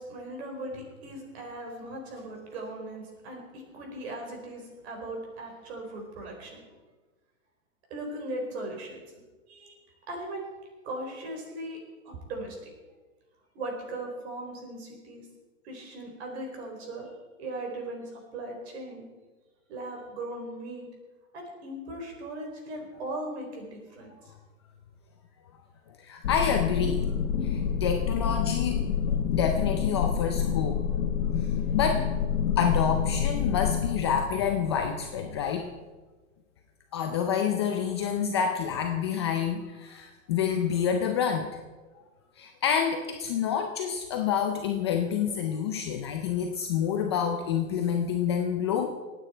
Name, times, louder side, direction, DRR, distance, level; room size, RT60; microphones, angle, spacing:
voice 1, 0.0-6.6 7.9-9.0 9.5-9.8 10.1-10.5 10.8-11.8 12.0-12.7 13.5-15.3 15.6-17.1 17.4-19.1 19.7-20.9 21.3-24.3, right 1 dB, 50° right, 1 dB, 4.5 m, -38 dB
voice 2, 26.0-27.1 27.4-28.8 29.3-30.9 31.7-32.1 32.6-35.7 36.9-41.5 42.4-48.9, left 7 dB, 20° left, 3 dB, 0.4 m, -28 dB
sound 1, 26.2-35.5, left 7 dB, 60° left, 1.5 m, -28 dB
24.5 x 9.2 x 4.4 m, 1.3 s
hypercardioid pair, 160°, 41 cm